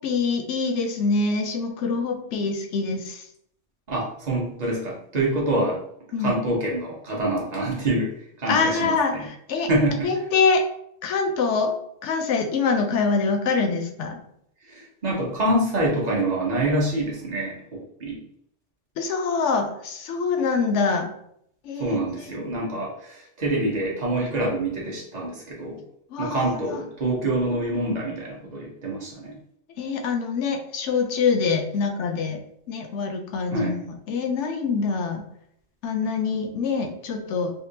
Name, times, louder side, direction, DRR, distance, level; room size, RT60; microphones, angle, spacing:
voice 1, 0.0-3.2 6.1-6.3 8.5-9.7 10.0-10.7 11.0-11.8 12.0-14.2 19.0-21.1 21.6-22.0 26.1-26.8 29.8-35.2 35.8-37.5, left 4 dB, 75° left, 5 dB, 0.9 m, -25 dB
voice 2, 3.9-5.8 6.2-9.2 9.7-10.1 14.7-18.2 21.8-25.8 26.2-29.3 33.5-33.8, right 1 dB, 40° right, -3 dB, 0.9 m, -26 dB
3.6 x 2.4 x 2.7 m, 0.70 s
omnidirectional pair, 1.2 m